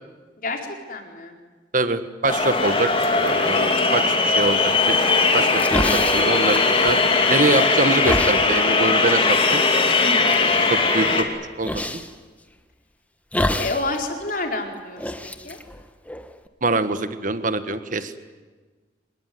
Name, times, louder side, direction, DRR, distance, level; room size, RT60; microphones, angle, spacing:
voice 1, 0.9-1.3 3.6-4.1 10.0-10.5 13.6-15.1 15.4-15.6, left 2 dB, 50° left, 2 dB, 4.4 m, -29 dB
voice 2, 1.7-2.9 3.2-4.9 5.3-5.5 5.7-7.0 7.3-9.6 10.7-11.3 11.6-11.9 16.6-18.1, right 2 dB, 45° right, 11 dB, 1.5 m, -24 dB
sound 1, 2.3-11.2, left 3 dB, 30° left, 2.8 m, -19 dB
sound 2, 5.3-7.2 7.5-8.4 9.3-9.4 10.0-10.4 11.6-12.1 13.3-13.9 14.2-14.3 15.0-16.5, left 1 dB, 10° left, 1.3 m, -27 dB
25.5 x 21.0 x 9.6 m, 1.4 s
head